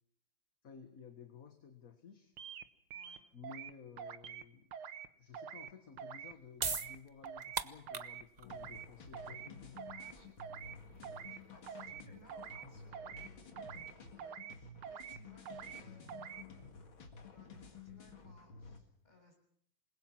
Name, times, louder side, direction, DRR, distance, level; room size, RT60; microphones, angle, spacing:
voice 1, 0.6-2.3 3.3-4.6 5.2-9.9, left 6 dB, 45° left, 6 dB, 1.9 m, -54 dB
sound 1, 2.4-2.6 2.9-3.7 4.0-4.4 4.7-5.1 5.3-5.7 6.0-6.3 6.6-7.0 7.2-7.6 7.9-8.2 8.5-8.9 9.1-9.5 9.8-10.1 10.4-10.8 11.0-11.4 11.7-12.0 12.3-12.7 12.9-13.3 13.6-13.9 14.2-14.6 14.8-15.2 15.5-15.8 16.1-16.4, right 8 dB, 85° right, 2.0 m, -46 dB
voice 2, 2.9-3.2 9.8-16.7 17.3-19.4, left 1 dB, 20° left, 2 dB, 7.2 m, -65 dB
sound 2, 6.1-12.9, right 5 dB, 50° right, 0.4 m, -43 dB
sound 3, 8.4-18.8, left 4 dB, 70° left, 2.9 m, -53 dB
27.5 x 21.0 x 6.0 m, 0.67 s
omnidirectional pair, 2.3 m